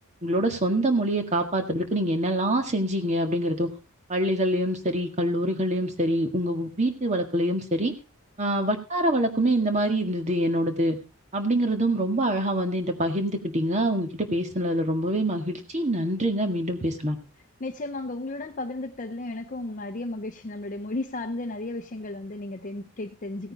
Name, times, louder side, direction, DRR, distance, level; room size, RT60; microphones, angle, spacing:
voice 1, 0.2-3.7 4.1-7.9 8.4-11.0 11.3-17.2, right 1 dB, 30° right, 1.8 m, -25 dB
voice 2, 17.6-23.5, left 2 dB, 35° left, 0.7 m, -34 dB
16.5 x 9.5 x 4.0 m
head